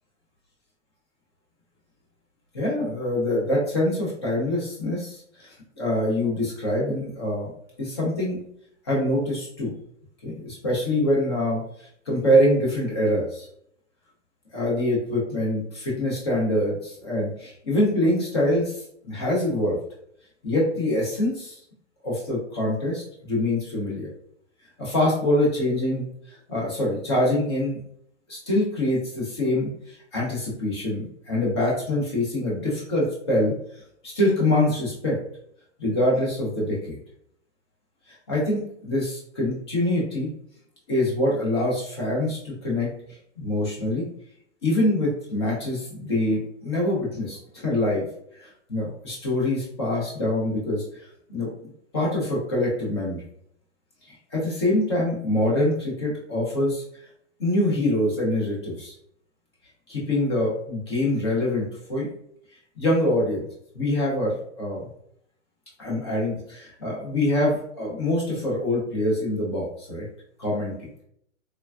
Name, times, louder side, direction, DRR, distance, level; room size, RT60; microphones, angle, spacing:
voice 1, 2.5-5.5 5.8-7.5 7.8-8.4 8.9-9.7 10.2-11.6 12.1-13.5 14.5-19.8 20.4-21.6 22.0-24.1 24.8-27.8 28.3-33.5 34.0-35.2 35.8-37.0 38.3-40.3 40.9-42.9 43.4-44.1 44.6-48.1 48.4-50.8 51.3-51.5 51.9-53.2 54.3-56.8 57.4-58.9 59.9-62.1 62.8-63.5 63.7-64.9 65.8-70.1 70.4-70.7, left 1 dB, 20° left, -4 dB, 0.5 m, -25 dB
3.3 x 2.2 x 2.3 m, 0.69 s
hypercardioid pair, 160°, 38 cm